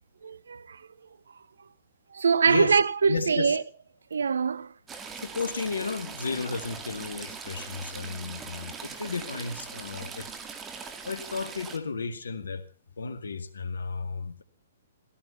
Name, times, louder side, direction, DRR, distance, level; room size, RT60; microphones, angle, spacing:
voice 1, 0.2-0.8 2.1-3.6 4.1-4.7, right 5 dB, 80° right, 0.7 m, -24 dB
voice 2, 2.5-2.8 3.1-3.6 5.2-10.3 11.0-12.6 13.0-14.4, left 4 dB, 80° left, 2.1 m, -33 dB
Stream / Trickle dribble, 4.9-11.8, right 5 dB, 15° right, 2.1 m, -41 dB
16.0 x 15.5 x 5.7 m
hypercardioid pair, 125°, 0 cm